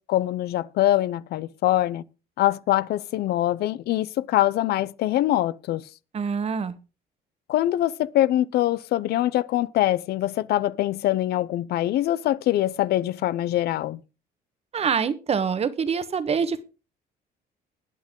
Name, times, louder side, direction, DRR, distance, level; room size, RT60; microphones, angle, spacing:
voice 1, 0.1-2.0 2.4-5.8 7.5-14.0, left 14 dB, 70° left, 0.6 m, -23 dB
voice 2, 6.1-6.8 14.7-16.6, right 6 dB, 40° right, 1.2 m, -25 dB
20.0 x 7.4 x 3.7 m
cardioid pair, 110°, 17 cm